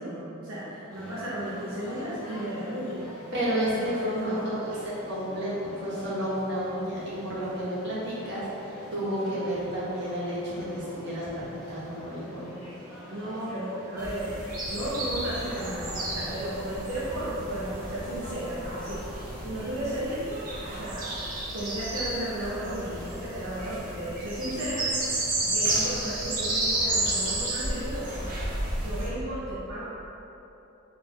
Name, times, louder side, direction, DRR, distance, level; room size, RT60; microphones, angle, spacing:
voice 1, 0.0-3.1 3.8-4.6 13.1-14.4 14.6-21.1 21.5-24.9 25.4-28.3 28.7-29.8, right 1 dB, 85° right, -8 dB, 0.8 m, -34 dB
sound 1, 0.9-20.2, left 1 dB, 5° left, 1.2 m, -46 dB
voice 2, 3.3-4.3 4.6-11.3 11.7-12.5, equal, 60° right, -9 dB, 1.4 m, -31 dB
sound 2, 14.0-29.1, right 2 dB, 40° right, 0.8 m, -32 dB
4.2 x 3.2 x 4.0 m, 2.9 s
head